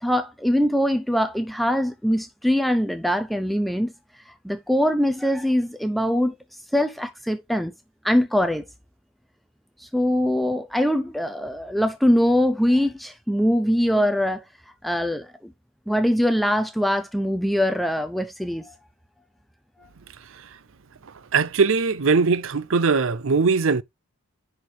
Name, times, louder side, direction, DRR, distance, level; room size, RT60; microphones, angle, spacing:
voice 1, 0.0-3.9 4.3-6.3 6.7-7.7 8.0-8.6 9.8-14.4 14.8-15.3 15.9-18.7, equal, ahead, 0.5 m, -22 dB
voice 2, 21.3-23.8, right 4 dB, 65° right, 0.6 m, -20 dB
10.5 x 4.6 x 3.3 m
head